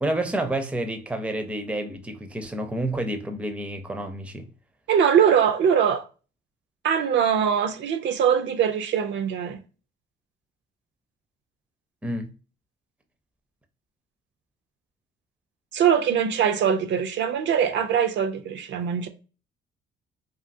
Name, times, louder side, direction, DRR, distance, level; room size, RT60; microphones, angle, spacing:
voice 1, 0.0-4.5 12.0-12.3, right 1 dB, 5° right, 0.4 m, -29 dB
voice 2, 4.9-6.1 6.8-9.6 15.7-19.1, right 8 dB, 65° right, 0.4 m, -22 dB
2.6 x 2.4 x 2.5 m
cardioid pair, 90°, 20 cm